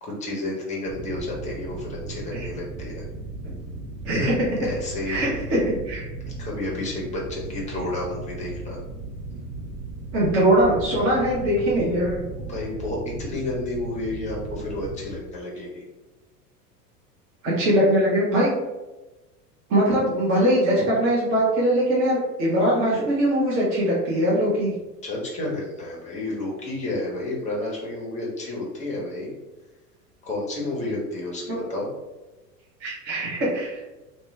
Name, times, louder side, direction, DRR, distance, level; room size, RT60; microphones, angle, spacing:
voice 1, 0.0-3.0 4.6-5.2 6.4-8.8 12.4-15.8 25.0-29.3 30.2-31.9, left 2 dB, 15° left, -3 dB, 0.8 m, -31 dB
sound 1, 0.8-15.1, right 3 dB, 45° right, 1.1 m, -36 dB
voice 2, 4.0-4.6 5.1-5.6 5.8-6.1 10.1-12.2 17.4-18.5 19.7-24.7 31.5-31.6 32.8-33.8, right 1 dB, 25° right, -7 dB, 0.9 m, -21 dB
3.0 x 2.2 x 3.2 m, 1.1 s
figure-of-eight pair, 85°, 48 cm